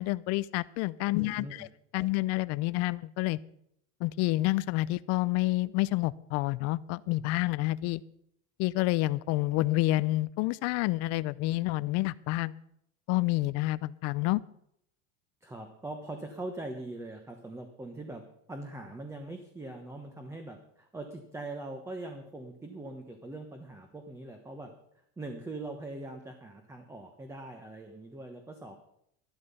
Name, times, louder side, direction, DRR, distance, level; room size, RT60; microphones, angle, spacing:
voice 1, 0.0-1.7 1.9-3.4 4.0-8.0 8.6-12.5 13.1-14.4, left 19 dB, 45° left, 19 dB, 0.5 m, -28 dB
voice 2, 1.1-1.7 2.0-2.1 15.4-24.7 25.2-28.8, right 2 dB, 10° right, 5 dB, 1.1 m, -42 dB
12.5 x 12.0 x 5.5 m, 0.74 s
supercardioid pair, 145°, 34 cm